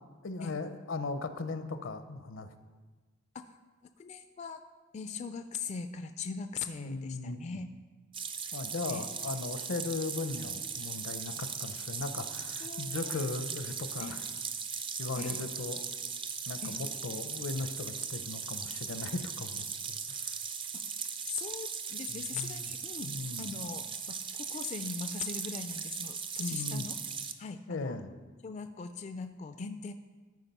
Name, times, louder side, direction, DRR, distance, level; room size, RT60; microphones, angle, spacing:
voice 1, 0.2-2.5 6.7-7.6 8.5-14.2 15.0-15.8 16.5-20.3 22.1-22.7 23.0-23.5 26.4-26.9 27.7-28.1, left 3 dB, 75° left, 10 dB, 0.6 m, -38 dB
voice 2, 4.0-4.6 4.9-7.7 8.9-9.1 12.6-13.2 14.0-14.2 15.2-15.4 16.6-16.8 21.3-23.1 23.4-26.9 27.4-28.0 28.4-29.9, left 5 dB, 35° left, 9 dB, 0.3 m, -40 dB
sound 1, 8.1-27.3, right 6 dB, 25° right, 0.5 m, -38 dB
13.0 x 4.8 x 5.5 m, 1.3 s
head